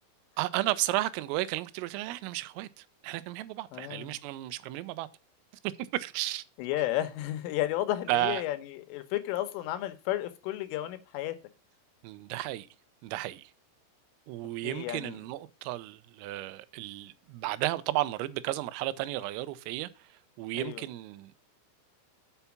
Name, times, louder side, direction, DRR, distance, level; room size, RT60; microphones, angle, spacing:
voice 1, 0.4-5.1 5.6-6.4 8.1-8.4 12.0-12.7 13.0-13.5 14.3-20.1 20.4-21.4, right 16 dB, 90° right, 3.3 m, -33 dB
voice 2, 3.7-4.2 6.6-11.4 14.6-15.1 20.5-20.8, left 14 dB, 80° left, 3.3 m, -32 dB
7.0 x 5.5 x 7.0 m
omnidirectional pair, 5.9 m